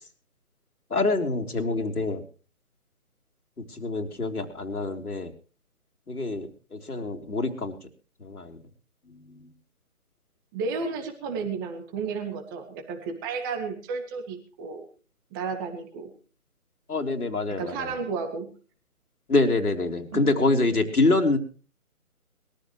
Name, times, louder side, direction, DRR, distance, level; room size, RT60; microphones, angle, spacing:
voice 1, 0.9-2.2 3.7-5.3 6.1-7.8 8.2-8.6 9.1-9.5 16.9-17.9 19.3-21.4, left 2 dB, 90° left, 3 dB, 3.6 m, -26 dB
voice 2, 10.5-14.8 15.3-16.1 17.6-18.5 20.1-20.3, right 5 dB, 15° right, 5 dB, 1.9 m, -32 dB
22.0 x 14.0 x 3.1 m, 0.38 s
figure-of-eight pair, 160°, 43 cm